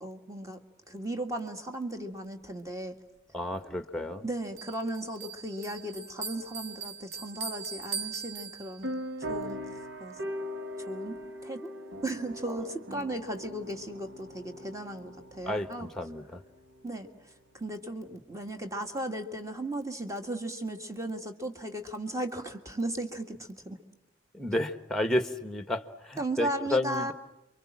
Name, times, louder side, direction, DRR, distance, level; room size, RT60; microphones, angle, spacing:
voice 1, 0.0-3.0 4.2-8.9 9.2-10.2 10.8-11.7 12.0-15.9 16.8-23.8 26.2-27.1, right 1 dB, 15° right, 6 dB, 1.9 m, -36 dB
voice 2, 3.3-4.2 12.5-12.6 15.4-16.4 24.3-27.1, left 1 dB, ahead, 9 dB, 1.3 m, -31 dB
Bell, 4.6-9.1, right 5 dB, 85° right, 2.6 m, -40 dB
sound 1, 8.8-16.9, equal, 70° right, 1.3 m, -40 dB
28.5 x 24.5 x 7.4 m, 0.93 s
head